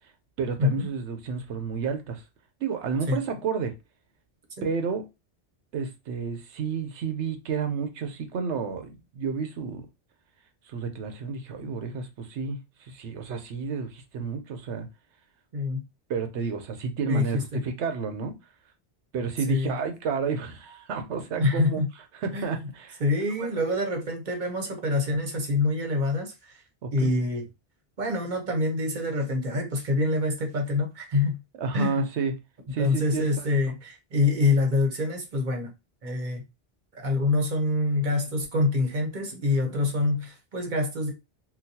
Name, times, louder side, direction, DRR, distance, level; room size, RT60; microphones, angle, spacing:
voice 1, 0.4-2.2 2.6-3.7 4.6-5.1 5.7-9.9 10.7-14.9 16.1-18.4 19.1-21.8 22.1-23.0 23.4-23.5 26.8-27.1 31.6-32.4 32.7-33.5, right 5 dB, 90° right, 1.0 m, -31 dB
voice 2, 17.1-17.6 19.5-19.8 21.4-21.9 22.3-22.5 23.0-26.6 26.9-27.4 28.0-31.4 31.7-32.0 32.8-35.7 36.0-36.4 36.9-41.1, left 2 dB, 50° right, 0.9 m, -26 dB
3.9 x 2.3 x 2.7 m
omnidirectional pair, 1.1 m